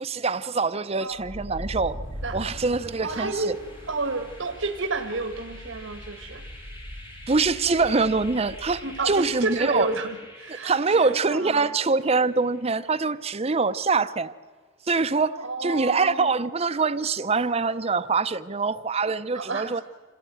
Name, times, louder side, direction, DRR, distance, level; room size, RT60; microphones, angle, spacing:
voice 1, 0.0-2.0 2.3-3.5 7.3-9.9 10.5-14.3 14.9-19.8, right 4 dB, 30° right, 0.6 m, -24 dB
sound 1, 1.1-13.0, equal, 25° left, 3.9 m, -42 dB
voice 2, 3.0-3.6 3.9-6.4 8.8-11.7 15.4-16.3 19.3-19.8, right 3 dB, 75° right, 1.6 m, -30 dB
27.0 x 16.5 x 9.3 m
head